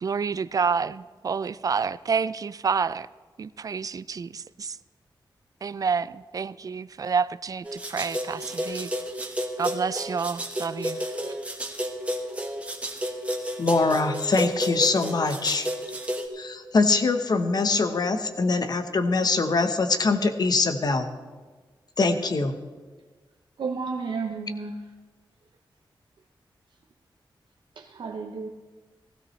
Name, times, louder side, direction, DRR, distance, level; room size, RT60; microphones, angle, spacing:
voice 1, 0.0-3.1 3.4-4.8 5.6-8.9 9.6-11.1, right 5 dB, 45° right, 0.3 m, -28 dB
sound 1, 7.6-16.2, equal, 15° right, 1.3 m, -31 dB
voice 2, 13.6-15.7 16.3-21.1 22.0-22.5, left 3 dB, 50° left, 1.0 m, -23 dB
voice 3, 23.6-24.8 27.8-28.5, right 4 dB, 65° right, 0.7 m, -32 dB
16.5 x 16.0 x 3.2 m
wide cardioid pair, 125°, 9 cm